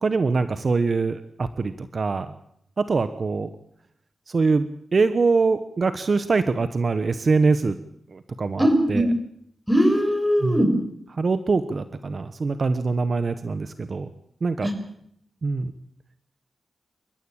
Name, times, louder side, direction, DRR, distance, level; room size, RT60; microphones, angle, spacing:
voice 1, 0.0-2.3 2.8-3.5 4.3-4.7 4.9-7.8 8.1-9.1 10.4-10.6 11.1-14.1 14.4-14.7 15.4-15.7, right 4 dB, 50° right, 11 dB, 1.3 m, -23 dB
voice 2, 8.6-9.0 9.7-10.7 14.6-14.7, equal, 5° right, 6 dB, 6.1 m, -20 dB
28.5 x 14.5 x 8.9 m, 0.71 s
wide cardioid pair, 85°, 0 cm